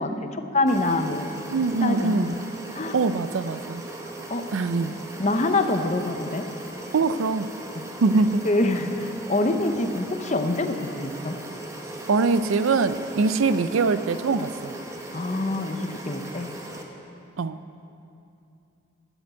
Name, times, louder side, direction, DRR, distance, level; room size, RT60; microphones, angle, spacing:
voice 1, 0.0-1.4 1.8-2.3 2.7-3.0 4.3-4.5 4.8-6.4 8.4-11.4 15.1-16.5, left 2 dB, 35° left, 7 dB, 0.7 m, -25 dB
sound 1, 0.7-16.8, right 1 dB, 15° right, 1.0 m, -38 dB
voice 2, 1.5-2.3 2.9-3.8 4.5-5.0 6.9-7.5 8.0-8.4 12.1-14.7 17.4-17.6, right 4 dB, 75° right, 12 dB, 0.5 m, -23 dB
12.5 x 8.0 x 8.2 m, 2.6 s
head